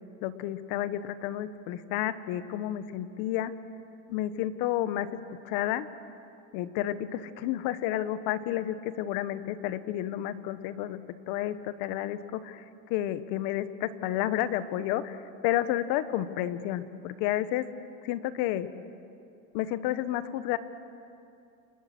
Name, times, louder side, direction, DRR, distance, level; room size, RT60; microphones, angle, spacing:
voice 1, 0.2-3.5 4.1-5.1 5.4-5.9 6.5-11.0 11.3-12.6 12.9-15.2 15.4-17.7 18.0-18.7 19.5-20.6, left 13 dB, 50° left, 12 dB, 1.5 m, -31 dB
29.5 x 28.5 x 6.3 m, 2.5 s
supercardioid pair, 140°, 43 cm